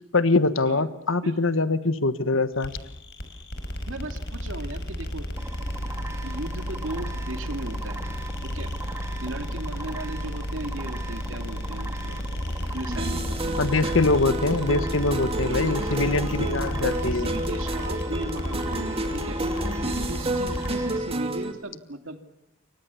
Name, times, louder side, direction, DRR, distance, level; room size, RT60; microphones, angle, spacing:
voice 1, 0.1-2.7 13.6-17.3, left 3 dB, 75° left, 13 dB, 1.4 m, -23 dB
sound 1, 2.6-20.8, equal, 60° left, 5.2 m, -33 dB
voice 2, 3.9-5.3 6.2-8.0 8.4-8.7 9.2-13.6 15.3-16.1 16.4-19.4 19.8-22.2, right 1 dB, 75° right, 7 dB, 2.5 m, -37 dB
sound 2, 5.4-21.0, right 2 dB, 15° right, 1.9 m, -39 dB
sound 3, 12.9-21.5, right 1 dB, 30° right, 2.8 m, -30 dB
29.0 x 24.0 x 7.1 m, 0.75 s
head